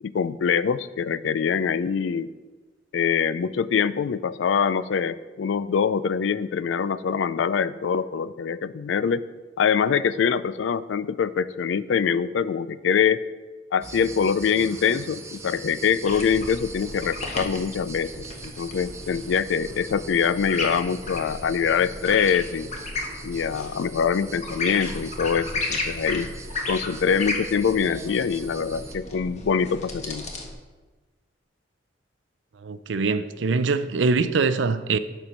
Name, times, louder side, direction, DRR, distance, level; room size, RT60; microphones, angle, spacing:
voice 1, 0.0-2.3 2.9-9.2 9.6-13.2 13.7-22.7 23.2-26.3 26.7-30.3, left 6 dB, 80° left, 0.4 m, -24 dB
sound 1, 13.8-28.9, right 3 dB, 15° right, 0.5 m, -42 dB
sound 2, 16.0-30.5, left 2 dB, 40° left, 1.1 m, -34 dB
voice 2, 32.6-35.0, right 4 dB, 75° right, 0.5 m, -23 dB
11.5 x 4.4 x 5.1 m
head